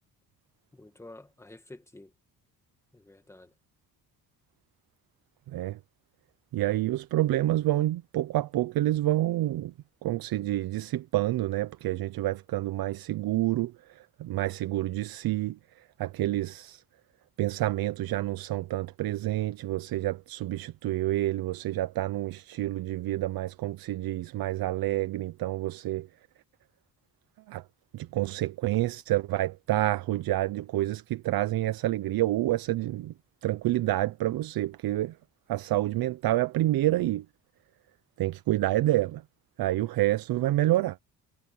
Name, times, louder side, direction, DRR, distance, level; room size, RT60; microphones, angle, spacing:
voice 1, 0.7-2.1 2.9-3.5, left 2 dB, 5° left, 1.8 m, -49 dB
voice 2, 6.5-9.7 10.0-16.8 17.4-26.1 27.5-27.6 27.9-33.1 33.4-35.2 35.5-37.2 38.2-39.2 39.6-41.0, right 15 dB, 65° right, 0.7 m, -28 dB
cardioid pair, 165°, 38 cm